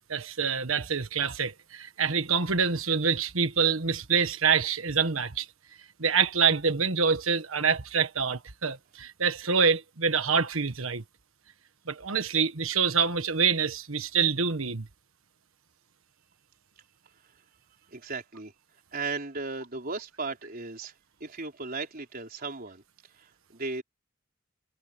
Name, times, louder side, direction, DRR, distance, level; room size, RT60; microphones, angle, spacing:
voice 1, 0.0-5.5 6.0-11.0 11.9-14.9, right 6 dB, 75° right, 1.4 m, -26 dB
voice 2, 17.9-18.5 18.9-20.9 21.2-22.8 23.2-23.8, right 3 dB, 45° right, 4.2 m, -36 dB
head